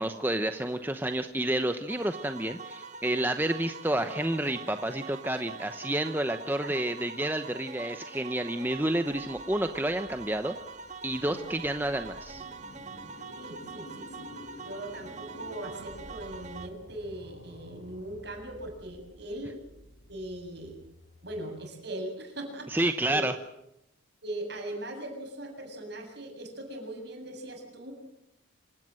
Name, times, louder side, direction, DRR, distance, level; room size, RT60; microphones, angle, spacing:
voice 1, 0.0-10.5 11.0-12.4 22.7-23.3, right 1 dB, 10° right, 8 dB, 0.8 m, -30 dB
sound 1, 1.9-16.7, right 4 dB, 35° right, 1.4 m, -44 dB
sound 2, 9.1-21.8, left 1 dB, 80° left, 5.4 m, -51 dB
voice 2, 13.4-14.3 14.6-19.6 20.1-20.8 21.2-23.3 24.2-27.9, right 1 dB, 55° right, 3 dB, 7.2 m, -40 dB
26.5 x 17.0 x 7.7 m, 0.84 s
head